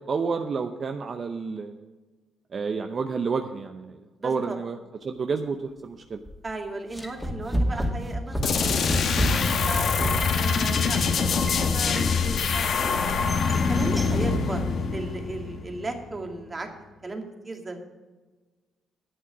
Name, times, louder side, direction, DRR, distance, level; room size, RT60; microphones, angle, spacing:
voice 1, 0.1-1.9 2.5-6.2, right 5 dB, 45° right, 6 dB, 0.7 m, -30 dB
voice 2, 4.2-4.6 6.4-13.0 13.7-16.7 17.0-17.8, right 2 dB, 25° right, 3 dB, 2.2 m, -36 dB
sound 1, 6.2-6.5 6.9-12.4 12.8-14.4, equal, ahead, 2.2 m, -31 dB
sound 2, 8.4-16.0, left 5 dB, 60° left, 1.1 m, -24 dB
11.0 x 8.5 x 6.1 m, 1.3 s
cardioid pair, 90°, 0 cm